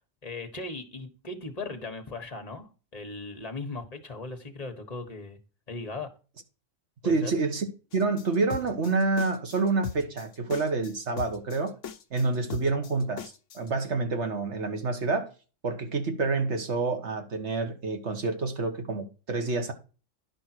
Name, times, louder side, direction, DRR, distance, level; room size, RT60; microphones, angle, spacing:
voice 1, 0.2-2.7 2.9-5.4 5.7-6.1 7.0-7.3, left 3 dB, 30° left, 1.6 m, -38 dB
voice 2, 7.0-7.7 7.9-11.8 12.1-15.3 15.6-19.7, right 3 dB, 65° right, 1.7 m, -28 dB
sound 1, 7.9-13.7, left 7 dB, 75° left, 1.2 m, -39 dB
11.0 x 5.6 x 4.5 m
omnidirectional pair, 1.3 m